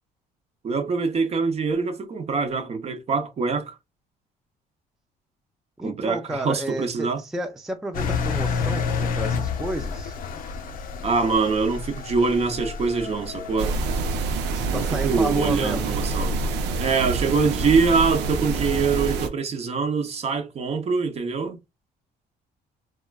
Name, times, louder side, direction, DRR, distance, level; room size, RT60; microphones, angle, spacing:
voice 1, 0.6-3.8 5.8-7.2 11.0-13.8 14.7-16.3 16.8-21.6, right 4 dB, 40° right, 0.7 m, -24 dB
voice 2, 5.8-10.2 14.5-16.0, right 1 dB, ahead, 0.4 m, -31 dB
Engine, 7.9-13.8, left 5 dB, 55° left, 0.5 m, -29 dB
sound 1, 13.6-19.3, right 3 dB, 90° right, 0.6 m, -26 dB
3.6 x 2.2 x 2.3 m
cardioid pair, 110°, 17 cm